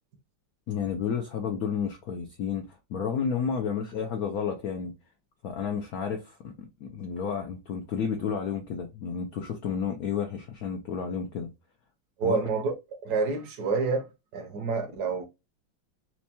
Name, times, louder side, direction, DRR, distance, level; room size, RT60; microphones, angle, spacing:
voice 1, 0.7-4.9 5.4-11.5 12.2-12.4, left 7 dB, 80° left, 0.8 m, -31 dB
voice 2, 12.2-12.7 13.0-14.0 14.3-15.2, right 4 dB, 65° right, 1.0 m, -28 dB
4.4 x 2.2 x 2.7 m
omnidirectional pair, 2.3 m